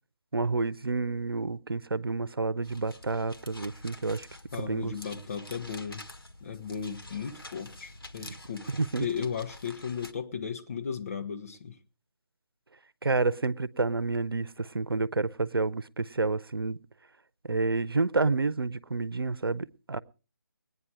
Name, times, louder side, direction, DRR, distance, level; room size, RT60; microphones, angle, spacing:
voice 1, 0.3-4.3 4.6-4.9 8.2-8.3 8.7-9.1 13.0-16.8 17.5-20.0, right 3 dB, 85° right, 0.8 m, -29 dB
sound 1, 2.6-10.1, left 2 dB, 90° left, 1.7 m, -47 dB
voice 2, 4.5-6.1 6.4-8.7 9.0-11.8, left 6 dB, 40° left, 1.5 m, -36 dB
20.5 x 9.7 x 4.9 m
figure-of-eight pair, 160°, 12 cm